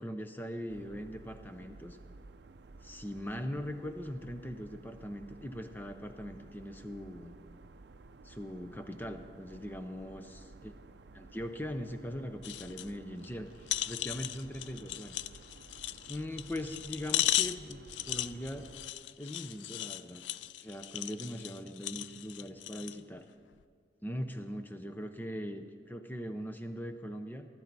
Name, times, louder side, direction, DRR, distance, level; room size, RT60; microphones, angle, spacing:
voice 1, 0.0-2.0 2.8-7.4 8.2-10.7 11.1-15.2 16.1-17.8 18.1-18.7 19.2-20.2 20.6-23.3 24.0-27.5, equal, 10° left, 7 dB, 0.6 m, -41 dB
sound 1, 0.7-18.9, right 3 dB, 70° right, 0.5 m, -54 dB
sound 2, 12.4-12.9 13.2-13.3 13.7-23.0 23.5-23.6, left 13 dB, 85° left, 0.3 m, -36 dB
15.0 x 13.0 x 4.1 m, 2.2 s
head